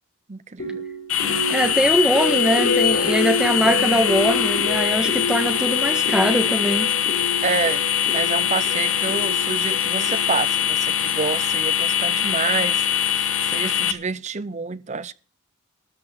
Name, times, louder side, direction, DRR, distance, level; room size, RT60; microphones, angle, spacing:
voice 1, 0.3-0.8 7.4-7.8 8.1-15.1, right 5 dB, 35° right, 0.6 m, -28 dB
sound 1, 0.6-10.7, left 2 dB, 60° left, 4.4 m, -28 dB
sound 2, 1.1-13.9, left 9 dB, 80° left, 1.2 m, -23 dB
voice 2, 1.5-6.9, equal, 5° right, 1.4 m, -22 dB
13.5 x 6.0 x 9.0 m
head